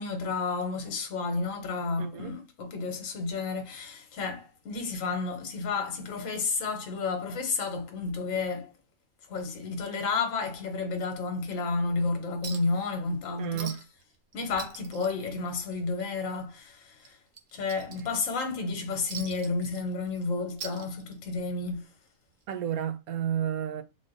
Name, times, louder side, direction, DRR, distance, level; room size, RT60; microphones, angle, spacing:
voice 1, 0.0-8.7 9.3-13.8 14.3-17.2 17.5-21.9, left 4 dB, 65° left, 1.2 m, -31 dB
voice 2, 2.0-2.3 13.4-13.7 22.5-23.8, right 9 dB, 85° right, 1.1 m, -31 dB
Chink clink, 12.4-12.8 13.1-13.2 13.6-14.0 14.3-16.0 16.4-16.5 17.0-18.4 19.1-20.2 20.5-21.4 22.5-22.6, right 6 dB, 60° right, 0.8 m, -43 dB
3.7 x 2.4 x 3.8 m
omnidirectional pair, 1.5 m